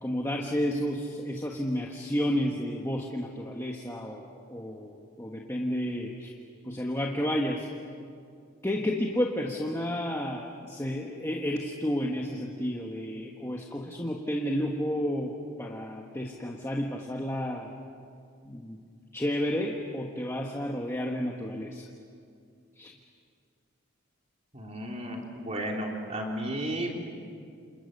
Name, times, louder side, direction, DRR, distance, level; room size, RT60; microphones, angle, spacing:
voice 1, 0.0-6.3 6.6-7.7 8.6-15.3 15.6-17.7 18.4-18.8 19.1-21.9 22.8-22.9, equal, 15° left, -1 dB, 1.4 m, -31 dB
voice 2, 24.5-27.0, right 1 dB, 30° right, 0 dB, 3.4 m, -33 dB
29.0 x 27.5 x 6.7 m, 2.3 s
head